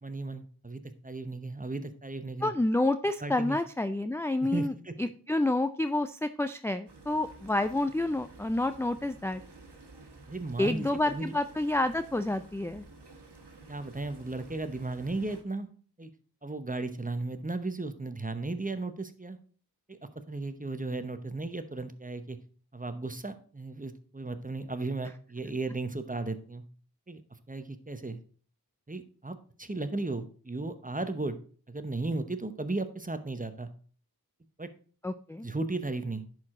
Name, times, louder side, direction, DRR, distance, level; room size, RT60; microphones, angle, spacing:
voice 1, 0.0-2.5 3.2-3.6 4.4-4.9 10.3-11.3 13.7-15.7 16.0-16.1 16.4-19.4 19.9-20.0 20.3-22.4 22.7-26.6 27.1-27.2 27.5-28.2 28.9-31.4 31.7-33.7 34.6-34.7 35.4-36.2, right 2 dB, 20° right, 10 dB, 0.8 m, -35 dB
voice 2, 2.4-4.7 5.0-9.4 10.6-12.8 35.0-35.5, left 2 dB, 5° left, 10 dB, 0.4 m, -29 dB
sound 1, 6.9-15.4, right 2 dB, 90° right, 1.3 m, -52 dB
10.5 x 4.8 x 3.7 m, 0.43 s
wide cardioid pair, 40°, 39 cm